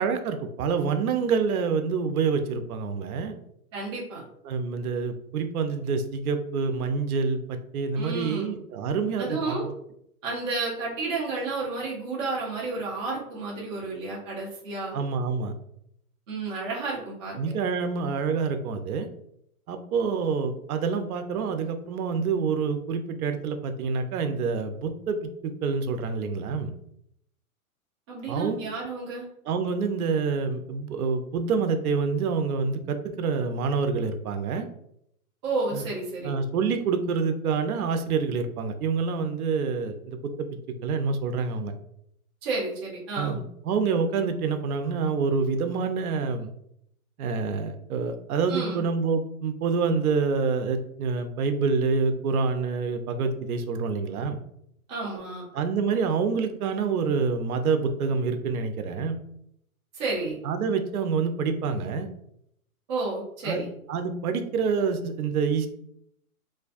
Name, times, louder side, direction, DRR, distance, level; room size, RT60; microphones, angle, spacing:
voice 1, 0.0-3.4 4.4-9.6 14.9-15.5 17.3-19.1 19.7-26.7 28.3-28.7 29.5-34.7 35.7-35.8 36.2-40.5 40.8-41.7 43.2-46.5 47.2-54.4 55.5-59.2 60.4-62.1 63.4-63.6 63.9-65.7, right 5 dB, 80° right, 7 dB, 0.5 m, -27 dB
voice 2, 3.7-4.3 8.0-8.5 9.2-9.7 10.2-15.0 16.3-17.4 28.1-29.3 35.4-36.3 42.4-43.4 48.5-48.8 54.9-55.5 59.9-60.4 62.9-63.7, right 3 dB, 20° right, -4 dB, 0.4 m, -31 dB
2.4 x 2.2 x 2.4 m, 0.74 s
hypercardioid pair, 135°, 44 cm